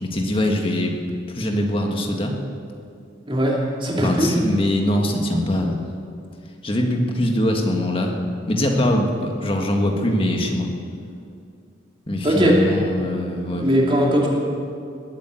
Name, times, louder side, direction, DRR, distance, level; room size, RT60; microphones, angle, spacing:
voice 1, 0.0-1.0 1.3-2.4 4.0-5.8 6.6-8.2 8.5-10.7 12.1-13.7, left 1 dB, 30° left, 2 dB, 1.7 m, -22 dB
voice 2, 3.3-4.3 12.2-12.6 13.5-14.3, equal, 25° right, -3 dB, 2.9 m, -19 dB
20.5 x 8.6 x 7.8 m, 2.4 s
head